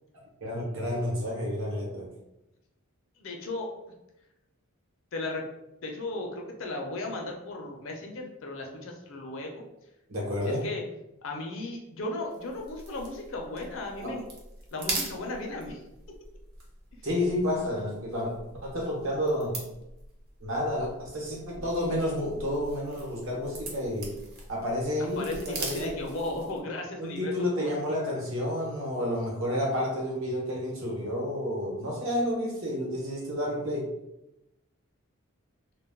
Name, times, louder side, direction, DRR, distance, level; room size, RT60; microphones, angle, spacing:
voice 1, 0.4-2.1 10.1-10.6 14.0-14.1 17.0-18.3 18.6-19.6 20.4-24.2 24.5-26.0 27.0-33.9, left 1 dB, 70° right, -3 dB, 0.9 m, -30 dB
voice 2, 3.2-3.7 5.1-5.5 5.8-9.7 10.4-10.8 11.2-14.2 14.7-15.8 16.1-16.2 25.0-27.7, left 2 dB, 65° left, 1 dB, 0.5 m, -36 dB
sound 1, 12.3-26.7, right 2 dB, 45° right, 0.6 m, -42 dB
2.2 x 2.2 x 3.4 m, 0.89 s
head